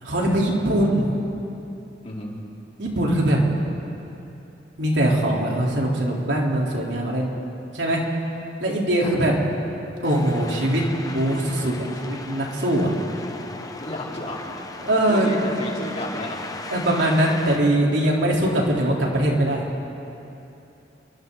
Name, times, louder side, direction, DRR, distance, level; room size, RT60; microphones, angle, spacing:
voice 1, 0.0-1.1 2.8-3.4 4.8-7.3 7.7-8.0 8.6-9.3 10.0-12.9 14.8-15.3 16.7-19.7, right 1 dB, 85° right, -3 dB, 3.8 m, -22 dB
voice 2, 2.0-2.4 9.0-9.2 13.1-14.5 15.1-16.5, left 1 dB, 40° left, -3 dB, 3.8 m, -34 dB
sound 1, 10.0-17.6, left 2 dB, 20° left, 1.1 m, -37 dB
29.5 x 24.0 x 4.1 m, 2.8 s
head